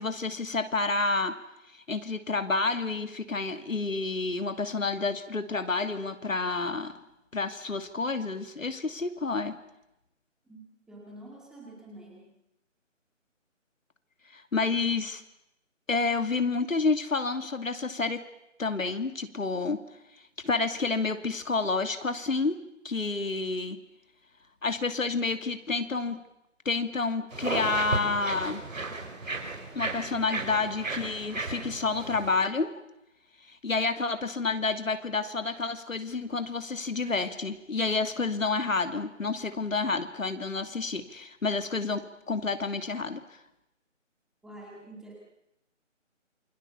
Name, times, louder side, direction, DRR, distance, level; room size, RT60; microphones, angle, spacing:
voice 1, 0.0-1.4 1.7-7.0 7.3-9.5 14.3-15.2 15.9-18.2 18.6-19.8 20.4-22.6 22.8-23.8 24.6-26.2 26.6-28.6 29.7-32.7 33.6-43.2, left 3 dB, 85° left, 9 dB, 2.7 m, -29 dB
voice 2, 10.9-12.3 44.4-45.1, right 1 dB, ahead, -2 dB, 2.1 m, -47 dB
sound 1, 27.3-32.4, right 3 dB, 85° right, 5.4 m, -35 dB
28.0 x 24.0 x 7.0 m, 0.87 s
figure-of-eight pair, 165°, 39 cm